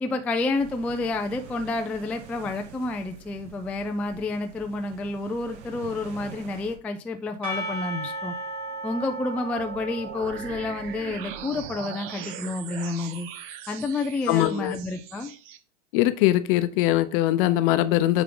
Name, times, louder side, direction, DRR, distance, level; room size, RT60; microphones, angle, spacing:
voice 1, 0.0-8.3 8.8-13.3 13.7-15.3, left 3 dB, 5° left, 0.3 m, -29 dB
sound 1, 0.5-6.8, right 8 dB, 65° right, 1.6 m, -46 dB
Percussion / Church bell, 7.4-12.2, right 2 dB, 25° right, 2.5 m, -36 dB
sound 2, 9.6-15.6, right 10 dB, 45° right, 0.9 m, -40 dB
voice 2, 14.3-14.7 15.9-18.2, left 14 dB, 45° left, 0.8 m, -21 dB
9.4 x 3.7 x 3.8 m
hypercardioid pair, 115°, 37 cm